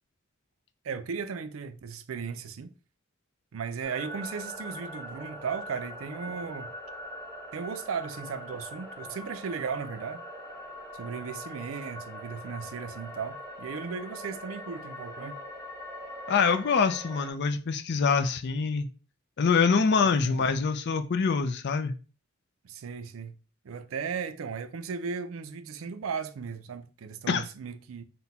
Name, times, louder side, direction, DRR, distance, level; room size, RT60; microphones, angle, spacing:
voice 1, 0.8-2.7 3.5-6.7 7.5-10.2 10.9-15.4 20.0-20.4 22.6-23.4 23.6-28.0, right 6 dB, 80° right, 0.4 m, -36 dB
sound 1, 3.8-17.3, equal, 10° left, 1.4 m, -42 dB
voice 2, 16.3-18.9 19.4-21.9 27.3-27.4, left 5 dB, 55° left, 0.4 m, -25 dB
4.1 x 2.2 x 4.1 m
head